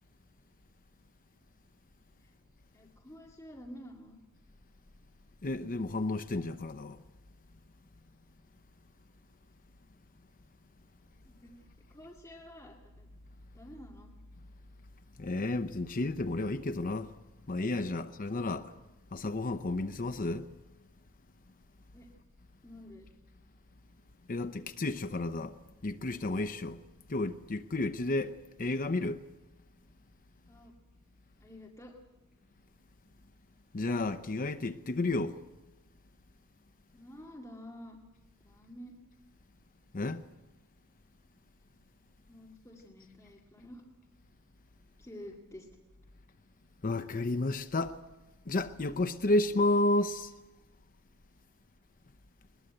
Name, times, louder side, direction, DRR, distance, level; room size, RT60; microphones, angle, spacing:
voice 1, 2.7-4.1 11.3-13.1 13.5-14.1 21.9-22.1 22.6-23.1 30.5-30.7 31.4-31.9 36.9-38.0 38.4-38.9 42.3-43.8 45.0-45.7, equal, 15° left, 2.1 m, -49 dB
voice 2, 5.4-7.0 15.2-17.1 17.5-18.7 19.1-20.5 24.3-25.6 25.8-26.8 27.1-28.3 28.6-29.2 33.7-35.4 39.9-40.2 46.8-48.0 48.5-50.3, left 2 dB, 40° left, 0.7 m, -31 dB
21.0 x 21.0 x 7.8 m
head